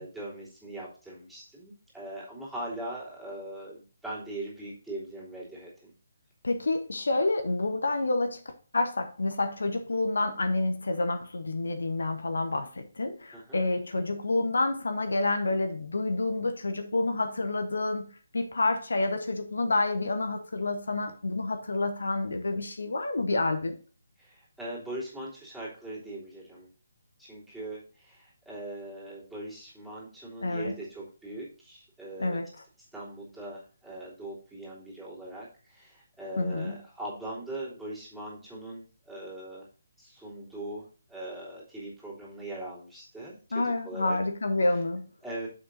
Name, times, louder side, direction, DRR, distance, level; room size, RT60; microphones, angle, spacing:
voice 1, 0.0-5.9 13.3-13.6 24.2-26.7 27.2-32.4 32.9-39.7 40.0-44.2 45.2-45.5, right 1 dB, 5° right, 3.2 m, -41 dB
voice 2, 6.4-8.4 8.7-23.8 30.4-30.7 32.2-32.5 36.4-36.8 43.5-45.0, left 2 dB, 65° left, 0.9 m, -28 dB
7.2 x 5.9 x 3.9 m
figure-of-eight pair, 145°, 0 cm